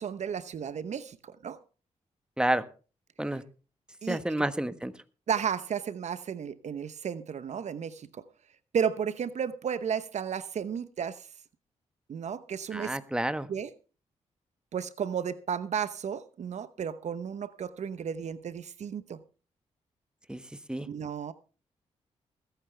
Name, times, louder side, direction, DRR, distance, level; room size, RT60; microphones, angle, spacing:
voice 1, 0.0-1.6 4.0-4.2 5.3-8.2 8.7-11.3 12.1-13.0 13.5-13.7 14.7-19.2 20.9-21.3, right 7 dB, 65° right, 0.9 m, -33 dB
voice 2, 4.1-4.9 12.7-13.5 20.3-20.4 20.7-20.9, right 1 dB, 5° right, 1.4 m, -29 dB
21.0 x 9.3 x 3.4 m
cardioid pair, 60°, 13 cm